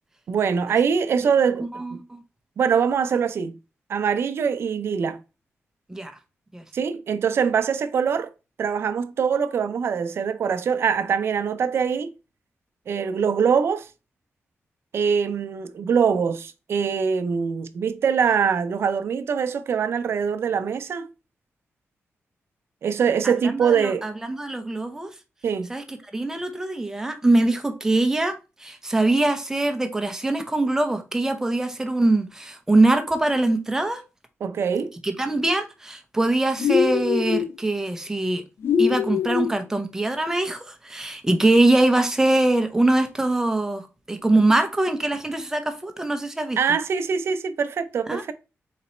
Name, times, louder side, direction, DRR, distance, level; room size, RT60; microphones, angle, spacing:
voice 1, 0.3-1.7 2.6-3.5 3.9-5.2 6.7-8.3 8.6-12.1 12.9-13.9 14.9-21.1 22.8-24.1 25.4-25.7 34.4-34.9 46.6-48.3, right 6 dB, 60° right, 0.5 m, -23 dB
voice 2, 1.7-2.2 5.9-6.1 6.5-6.6 23.2-25.1 25.7-28.3 28.6-34.0 35.0-38.4 38.8-46.6 48.1-48.2, right 2 dB, 10° right, 0.6 m, -23 dB
sound 1, 36.6-37.5 38.6-39.5, left 7 dB, 60° left, 0.4 m, -22 dB
4.0 x 2.9 x 4.3 m
wide cardioid pair, 160°, 5 cm